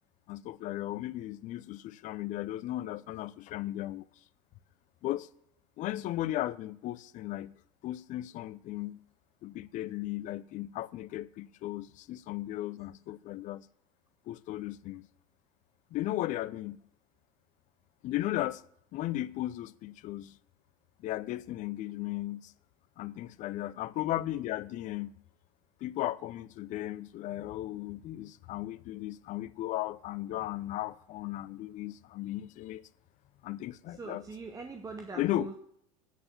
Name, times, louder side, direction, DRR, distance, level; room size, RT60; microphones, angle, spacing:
voice 1, 0.3-4.1 5.0-5.3 5.8-7.6 7.8-9.0 9.4-13.7 14.3-15.1 15.9-16.8 18.0-18.6 18.9-20.4 21.0-22.5 23.0-25.2 25.8-32.8 33.4-34.2 35.2-35.5, left 15 dB, 45° left, 0.6 m, -36 dB
voice 2, 34.0-35.5, right 4 dB, 20° right, 1.1 m, -42 dB
9.3 x 5.5 x 8.1 m
hypercardioid pair, 85°, 18 cm